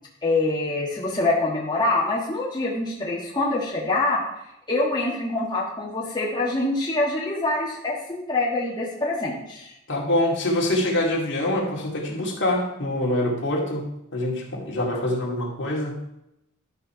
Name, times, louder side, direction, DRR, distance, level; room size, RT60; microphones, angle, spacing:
voice 1, 0.2-4.2 4.7-9.7 14.9-15.0, left 2 dB, 20° left, -5 dB, 1.4 m, -25 dB
voice 2, 9.9-13.9 14.1-16.0, left 1 dB, 55° left, -2 dB, 2.3 m, -25 dB
12.0 x 4.5 x 5.6 m, 0.85 s
head